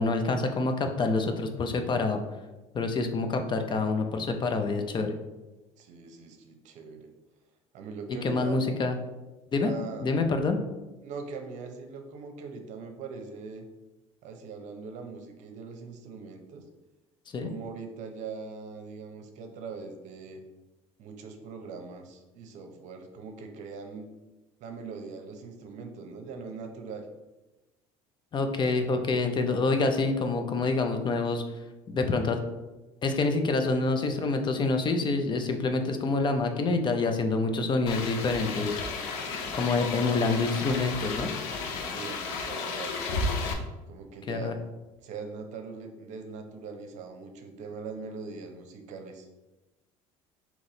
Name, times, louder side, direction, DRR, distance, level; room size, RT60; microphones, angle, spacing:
voice 1, 0.0-2.2 2.7-5.1 8.2-9.0 9.5-9.7 10.0-10.6 17.3-17.5 28.3-31.4 31.9-32.4 33.0-39.1 39.6-41.3 44.3-44.6, left 3 dB, 35° left, 6 dB, 0.6 m, -27 dB
voice 2, 5.8-7.1 7.7-8.6 9.6-10.1 11.0-13.7 14.2-16.6 17.4-20.4 21.0-24.1 24.6-27.1 41.9-43.1 43.9-44.6 45.0-49.3, right 4 dB, 60° right, 5 dB, 0.7 m, -41 dB
sound 1, 37.9-43.5, left 3 dB, 85° left, 0.7 m, -33 dB
4.0 x 3.0 x 3.8 m, 1.1 s
supercardioid pair, 95°, 14 cm